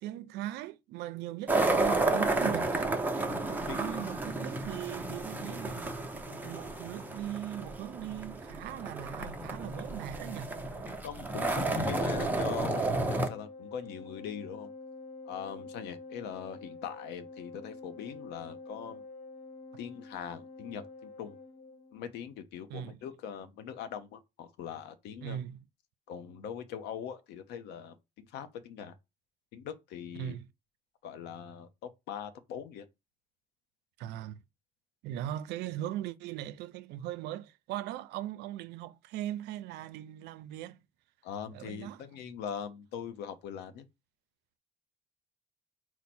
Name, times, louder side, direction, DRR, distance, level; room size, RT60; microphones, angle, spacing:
voice 1, 0.0-2.9 3.8-5.9 6.4-10.6 22.7-22.9 25.2-25.6 30.2-30.5 34.0-34.4 35.0-40.8 41.5-42.0, right 12 dB, 85° right, 0.4 m, -39 dB
sound 1, 1.5-13.3, right 2 dB, 10° right, 0.6 m, -32 dB
voice 2, 3.3-4.0 11.0-14.7 15.2-19.0 19.8-21.4 21.9-25.4 26.1-28.9 29.5-30.4 31.0-32.9 41.2-43.9, left 8 dB, 85° left, 0.7 m, -41 dB
Organ, 11.4-22.1, left 3 dB, 65° left, 1.0 m, -47 dB
4.4 x 2.1 x 4.2 m
cardioid pair, 110°, 17 cm